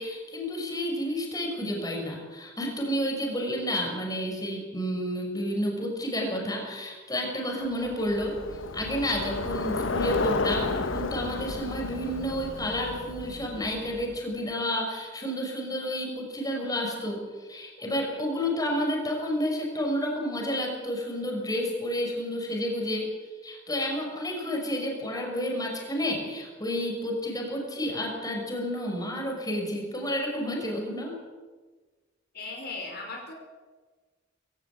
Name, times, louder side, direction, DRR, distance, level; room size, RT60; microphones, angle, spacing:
voice 1, 0.0-8.4 8.7-23.1 23.4-31.2, equal, 20° left, 1 dB, 5.9 m, -30 dB
Bicycle, 7.8-14.3, left 3 dB, 85° left, 1.1 m, -32 dB
voice 2, 32.3-33.3, left 3 dB, 55° left, 1 dB, 4.8 m, -37 dB
22.5 x 16.5 x 8.6 m, 1.4 s
head